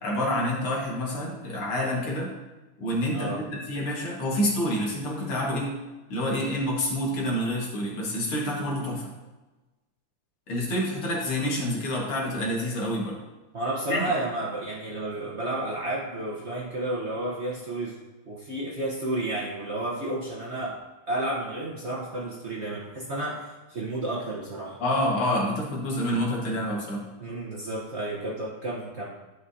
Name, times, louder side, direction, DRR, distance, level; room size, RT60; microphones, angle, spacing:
voice 1, 0.0-2.3 2.8-5.7 6.1-9.1 10.5-13.2 13.9-14.0 24.8-27.0, equal, 85° left, -3 dB, 2.6 m, -28 dB
voice 2, 13.5-18.0 18.3-20.8 21.1-24.8 27.2-29.1, right 1 dB, 45° right, -4 dB, 1.0 m, -31 dB
11.5 x 5.9 x 2.8 m, 1.1 s
omnidirectional pair, 2.4 m